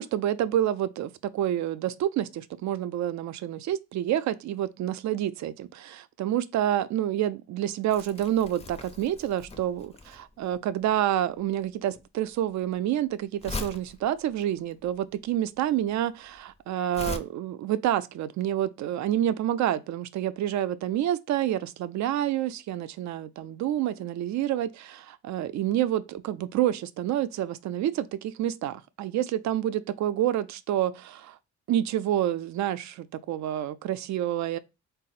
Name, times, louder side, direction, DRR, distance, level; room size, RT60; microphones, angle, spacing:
voice 1, 0.0-31.4 31.7-34.6, right 12 dB, 70° right, 0.5 m, -28 dB
Crumpling crinkling, 7.9-17.2, left 3 dB, 20° left, 0.5 m, -41 dB
3.7 x 2.0 x 4.0 m
cardioid pair, 90°, 30 cm